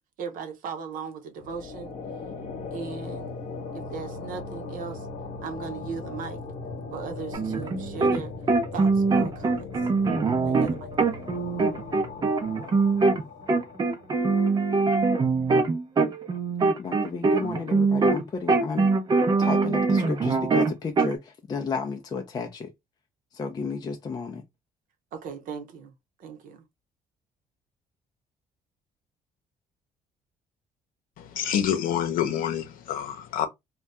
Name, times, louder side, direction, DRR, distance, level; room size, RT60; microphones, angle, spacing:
voice 1, 0.2-1.9 2.7-3.3 3.7-5.1 5.4-6.4 6.9-8.3 8.7-9.6 10.4-10.9 25.1-25.9 26.2-26.6, right 6 dB, 75° right, 0.8 m, -37 dB
sound 1, 1.4-14.5, left 3 dB, 65° left, 1.1 m, -38 dB
sound 2, 7.3-8.2 8.5-13.2 13.5-18.2 18.5-21.1, right 4 dB, 30° right, 0.6 m, -23 dB
voice 2, 16.8-18.9 19.4-22.7 23.3-24.4, left 4 dB, 30° left, 0.5 m, -32 dB
voice 3, 31.2-33.5, left 9 dB, 85° left, 0.8 m, -27 dB
2.6 x 2.3 x 3.3 m
cardioid pair, 135°, 14 cm